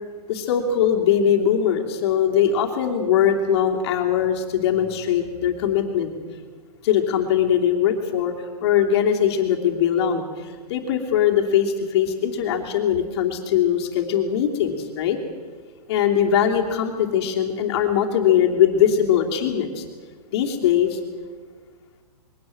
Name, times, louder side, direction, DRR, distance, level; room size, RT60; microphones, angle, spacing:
voice 1, 0.3-6.1 6.8-8.3 8.6-15.2 15.9-19.8 20.3-21.0, left 9 dB, 40° left, 2 dB, 2.8 m, -21 dB
22.0 x 18.0 x 7.7 m, 1.5 s
hypercardioid pair, 160°, 20 cm